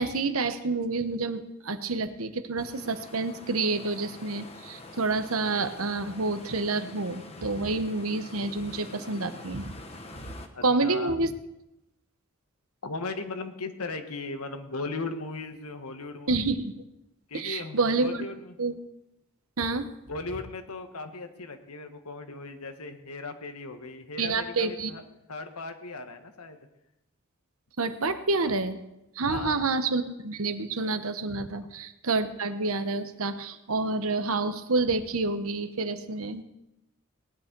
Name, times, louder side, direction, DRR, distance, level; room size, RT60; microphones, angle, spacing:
voice 1, 0.0-9.7 10.6-11.3 16.3-16.7 17.3-18.2 18.6-18.7 19.6-19.9 24.2-24.9 27.8-28.8 29.2-36.4, right 3 dB, 75° right, 10 dB, 1.1 m, -28 dB
sound 1, 2.6-10.5, left 2 dB, 25° left, 1.1 m, -46 dB
voice 2, 10.5-11.2 12.8-16.4 17.3-18.6 20.1-25.0 25.3-26.6 29.2-29.6, left 3 dB, 90° left, 7 dB, 1.4 m, -37 dB
18.5 x 11.0 x 4.6 m, 0.87 s
head